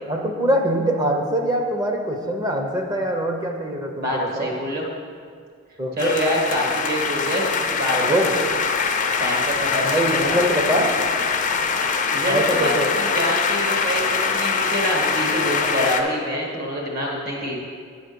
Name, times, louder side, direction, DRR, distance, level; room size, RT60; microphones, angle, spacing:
voice 1, 0.0-4.5 5.8-6.1 7.9-8.4 9.8-10.9 12.3-12.9 15.8-16.1, right 1 dB, 20° right, 2 dB, 0.9 m, -23 dB
voice 2, 4.0-4.9 6.0-8.4 9.2-10.3 12.1-17.6, equal, 45° right, -2 dB, 1.9 m, -26 dB
sound 1, 6.0-16.0, left 5 dB, 40° left, 0.6 m, -23 dB
8.7 x 5.1 x 6.9 m, 2.1 s
head